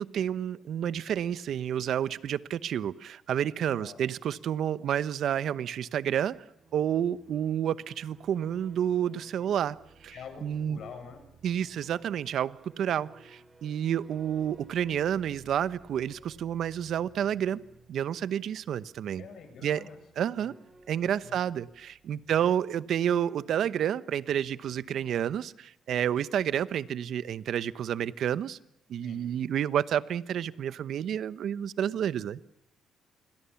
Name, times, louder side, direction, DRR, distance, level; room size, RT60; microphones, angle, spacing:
voice 1, 0.0-6.4 6.7-9.8 10.0-10.1 10.4-10.8 11.4-17.6 17.9-19.2 19.6-19.8 20.2-20.5 20.9-28.6 28.9-32.4, right 9 dB, 70° right, 16 dB, 1.0 m, -30 dB
voice 2, 3.7-4.0 9.4-9.5 10.1-11.3 19.2-20.0 20.4-20.6 21.0-21.4 22.3-22.5 29.0-29.3, left 6 dB, 65° left, 8 dB, 7.2 m, -47 dB
sound 1, 6.3-23.0, right 3 dB, 35° right, 5.5 m, -58 dB
28.0 x 21.5 x 7.2 m, 0.89 s
cardioid pair, 90°, 0 cm